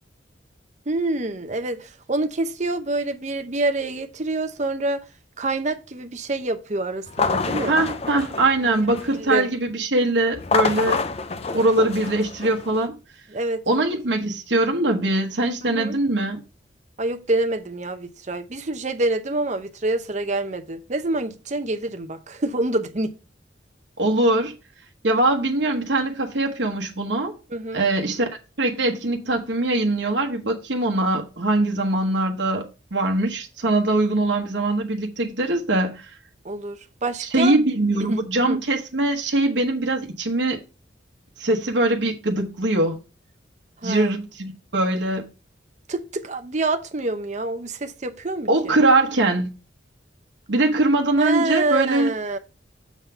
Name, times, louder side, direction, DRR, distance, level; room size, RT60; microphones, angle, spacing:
voice 1, 0.9-5.0 5.4-7.8 8.6-8.8 9.2-9.5 13.3-13.8 15.7-16.0 17.0-23.1 27.5-27.8 36.4-37.6 38.0-38.6 43.8-44.1 45.9-48.8 51.2-52.4, right 2 dB, 40° right, 0.8 m, -26 dB
sound 1, 7.1-9.3 10.3-12.9, left 4 dB, 35° left, 0.5 m, -27 dB
voice 2, 7.7-11.0 11.5-13.0 13.7-16.4 24.0-24.5 25.0-27.3 27.7-28.3 28.6-36.2 37.2-40.6 41.4-43.0 43.8-45.3 48.5-49.5 50.5-52.1, right 2 dB, 75° right, 1.1 m, -22 dB
7.2 x 3.8 x 5.6 m
head